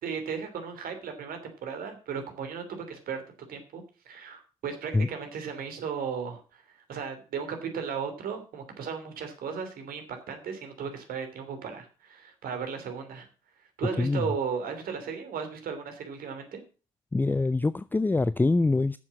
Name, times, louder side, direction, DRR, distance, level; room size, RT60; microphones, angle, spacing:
voice 1, 0.0-13.3 13.8-16.6, right 6 dB, 55° right, 2.9 m, -36 dB
voice 2, 17.1-19.0, left 3 dB, 10° left, 0.5 m, -24 dB
10.0 x 7.3 x 7.3 m
figure-of-eight pair, 50°, 17 cm